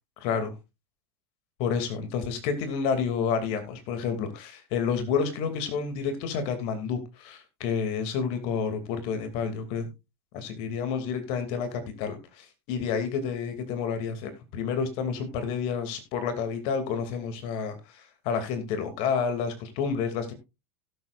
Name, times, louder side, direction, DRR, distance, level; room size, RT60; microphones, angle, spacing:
voice 1, 0.2-0.5 1.6-9.9 10.3-20.3, left 6 dB, 55° left, 2.5 m, -30 dB
17.0 x 8.1 x 2.5 m
hypercardioid pair, 100°, 12 cm